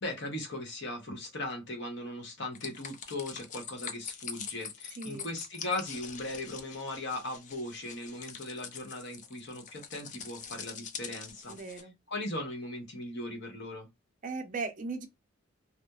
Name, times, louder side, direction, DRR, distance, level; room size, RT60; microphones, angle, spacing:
voice 1, 0.0-11.6 12.1-13.9, left 2 dB, 60° left, 0.9 m, -38 dB
sound 1, 2.5-11.8, left 7 dB, 40° left, 0.4 m, -44 dB
voice 2, 5.0-5.3 11.5-11.9 14.2-15.1, right 4 dB, 40° right, 0.5 m, -37 dB
2.8 x 2.0 x 2.2 m
head